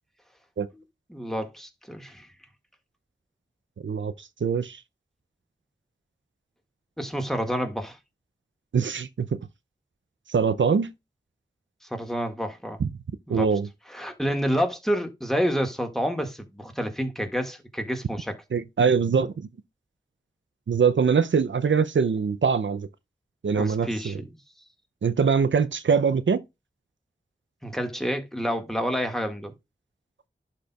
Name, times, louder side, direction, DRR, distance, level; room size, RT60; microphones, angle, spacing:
voice 1, 1.1-2.3 7.0-8.0 11.8-12.8 13.3-13.5 13.9-18.4 23.6-24.3 27.6-29.5, equal, ahead, 1.8 m, -29 dB
voice 2, 3.8-4.8 8.7-9.3 10.3-10.9 12.8-12.9 13.3-13.7 18.5-19.5 20.7-22.9 23.4-24.2 25.0-26.4, right 6 dB, 90° right, 0.5 m, -23 dB
11.5 x 4.3 x 2.3 m
wide cardioid pair, 40°, 19 cm